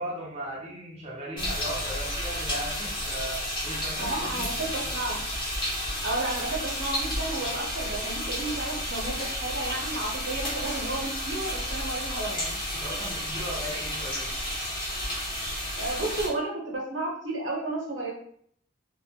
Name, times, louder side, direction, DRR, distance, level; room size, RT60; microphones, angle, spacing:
voice 1, 0.0-4.9 12.7-14.4, right 1 dB, 30° right, -4 dB, 0.5 m, -37 dB
Frying pan, 1.4-16.3, equal, 25° left, 0.8 m, -32 dB
voice 2, 4.0-5.2 6.0-12.6 15.8-18.1, right 2 dB, 85° right, -2 dB, 0.8 m, -32 dB
2.3 x 2.1 x 2.7 m, 0.63 s
head